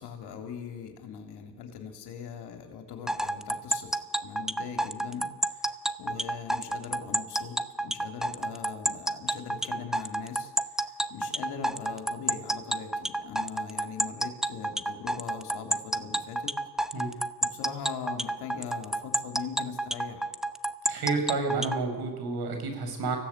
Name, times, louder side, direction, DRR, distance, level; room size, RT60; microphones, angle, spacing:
voice 1, 0.0-3.9 4.2-10.5 10.8-16.5 17.4-20.3, left 7 dB, 80° left, 4 dB, 3.5 m, -41 dB
sound 1, 3.1-21.8, right 1 dB, ahead, 0.9 m, -29 dB
voice 2, 20.9-23.2, right 3 dB, 70° right, 5 dB, 6.0 m, -30 dB
26.0 x 16.5 x 8.3 m, 1.4 s
cardioid pair, 95°, 39 cm